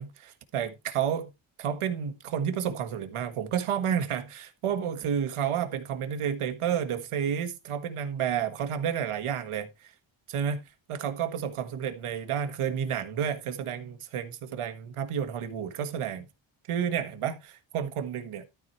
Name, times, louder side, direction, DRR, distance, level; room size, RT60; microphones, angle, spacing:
voice 1, 0.0-1.3 1.6-9.9 10.3-10.6 10.9-16.3 16.7-18.4, right 8 dB, 85° right, 1.6 m, -31 dB
13.0 x 4.6 x 4.5 m
wide cardioid pair, 130°, 50 cm